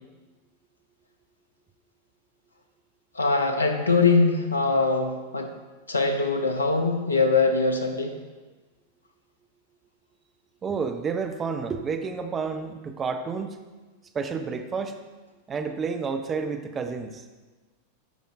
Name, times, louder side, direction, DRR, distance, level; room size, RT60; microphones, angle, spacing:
voice 1, 3.1-5.5 5.9-8.2, left 4 dB, 75° left, 6 dB, 0.7 m, -22 dB
voice 2, 10.6-13.6 14.1-15.0 15.5-17.2, right 5 dB, 20° right, 6 dB, 0.7 m, -30 dB
12.0 x 5.2 x 2.5 m, 1.3 s
figure-of-eight pair, 90°, 0 cm